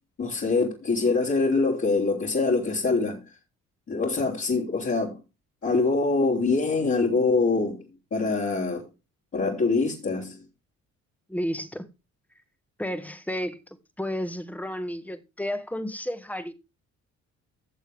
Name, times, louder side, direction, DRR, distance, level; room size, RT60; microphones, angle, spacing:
voice 1, 0.2-3.2 3.9-5.2 5.6-7.8 8.1-8.8 9.3-10.4, left 3 dB, 45° left, 3.8 m, -24 dB
voice 2, 11.3-11.9 12.8-13.6 14.0-16.5, equal, 5° left, 1.7 m, -32 dB
16.0 x 7.1 x 3.6 m
cardioid pair, 90°, 30 cm